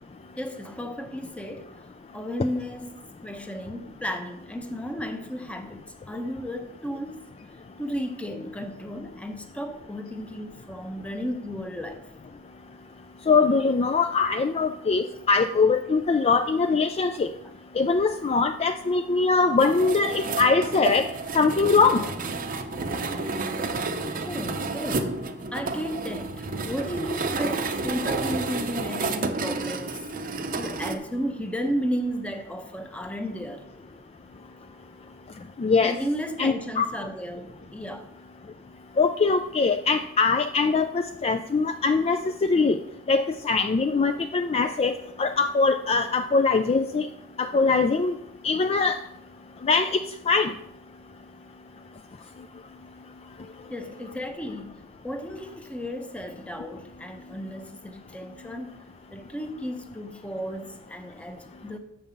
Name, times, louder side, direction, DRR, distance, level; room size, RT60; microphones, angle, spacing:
voice 1, 0.4-1.7 2.1-3.0 3.2-7.2 7.8-12.1 24.2-25.1 25.5-30.0 30.6-33.7 35.8-38.1 53.7-58.8 59.1-61.8, equal, 5° left, 0.8 m, -34 dB
voice 2, 13.3-17.3 17.8-21.1 21.3-22.0 35.6-35.9 36.4-36.9 39.0-42.8 43.1-47.1 47.4-48.1 48.4-49.0 49.6-50.0 50.3-50.5, left 4 dB, 30° left, 0.3 m, -22 dB
sound 1, 19.6-31.0, right 3 dB, 40° right, 0.6 m, -30 dB
6.5 x 5.4 x 7.0 m
head